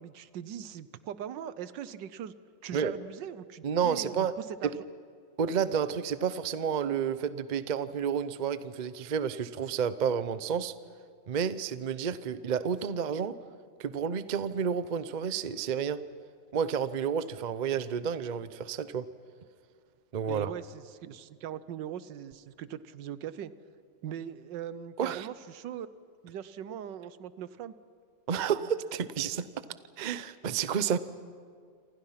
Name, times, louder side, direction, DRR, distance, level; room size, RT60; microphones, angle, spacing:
voice 1, 0.0-2.3 2.6-4.8 20.3-23.5 24.0-25.9 26.2-27.7, right 9 dB, 80° right, 15 dB, 1.5 m, -40 dB
voice 2, 3.6-4.3 4.6-4.7 5.4-10.7 11.3-13.4 13.8-16.0 16.5-19.1 20.1-20.5 25.0-25.3 28.3-29.5 30.0-31.0, right 7 dB, 60° right, 14 dB, 0.4 m, -30 dB
27.5 x 27.5 x 5.8 m, 2.1 s
omnidirectional pair, 1.9 m